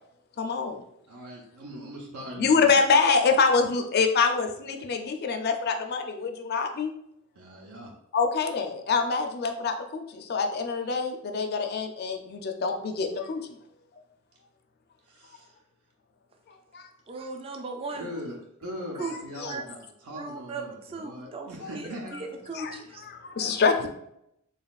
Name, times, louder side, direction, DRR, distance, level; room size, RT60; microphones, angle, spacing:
voice 1, 0.4-0.8 2.4-6.9 8.1-13.4 16.5-16.9 19.4-19.5 22.6-22.7 23.2-23.9, left 4 dB, 45° left, 5 dB, 0.4 m, -25 dB
voice 2, 1.1-2.8 7.3-7.9 15.0-15.6 17.9-22.4, equal, 80° right, -2 dB, 0.7 m, -41 dB
voice 3, 17.1-18.1 18.9-19.1 19.4-19.6 20.1-23.1, right 3 dB, 25° right, 3 dB, 0.4 m, -37 dB
4.0 x 3.6 x 2.4 m, 0.77 s
head